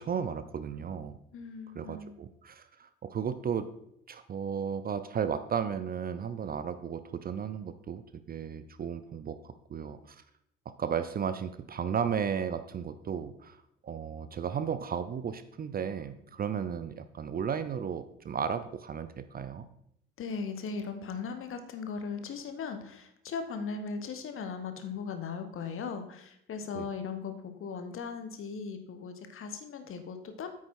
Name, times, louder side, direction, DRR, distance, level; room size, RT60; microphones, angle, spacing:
voice 1, 0.0-1.2 1.8-3.7 4.1-8.0 8.3-10.2 10.8-19.7 26.7-26.9, right 7 dB, 30° right, 12 dB, 0.5 m, -34 dB
voice 2, 1.3-2.2 20.2-30.5, left 5 dB, 40° left, 8 dB, 1.1 m, -38 dB
8.8 x 5.9 x 4.4 m, 0.75 s
figure-of-eight pair, 45°, 31 cm